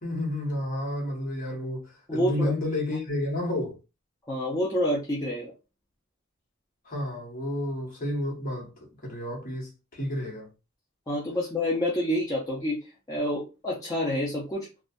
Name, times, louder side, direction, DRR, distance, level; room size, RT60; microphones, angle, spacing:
voice 1, 0.0-3.7 6.8-8.7 9.0-10.5, left 1 dB, 40° left, 1.1 m, -31 dB
voice 2, 2.1-2.5 4.3-5.5 11.1-12.8 13.1-14.7, left 1 dB, 15° left, 0.6 m, -28 dB
2.6 x 2.3 x 2.3 m
head